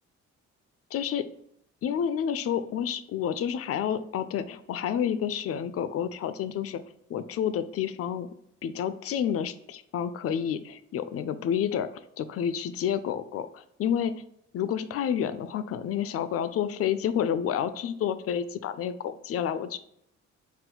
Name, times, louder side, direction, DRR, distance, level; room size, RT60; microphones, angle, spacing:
voice 1, 0.9-1.2 1.8-6.8 7.1-8.3 8.6-11.9 12.2-14.1 14.5-19.8, left 9 dB, 50° left, 12 dB, 0.4 m, -29 dB
4.2 x 2.1 x 3.7 m, 0.73 s
cardioid pair, 90°, 30 cm